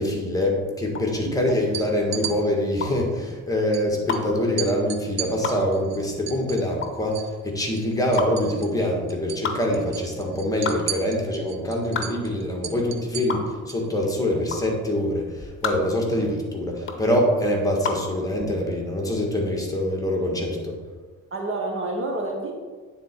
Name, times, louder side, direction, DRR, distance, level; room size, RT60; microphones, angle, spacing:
voice 1, 0.0-20.8, left 1 dB, 10° left, -1 dB, 1.7 m, -24 dB
sound 1, 0.9-18.1, left 5 dB, 40° left, 0.9 m, -32 dB
sound 2, 1.6-2.3 3.7-3.8 4.1-4.2 4.6-7.3 7.6-8.8 9.1-9.4 9.7-13.9, right 10 dB, 60° right, 0.7 m, -35 dB
voice 2, 21.3-22.5, right 2 dB, 45° right, 1 dB, 1.3 m, -29 dB
9.2 x 4.1 x 4.5 m, 1.5 s
cardioid pair, 90°, 30 cm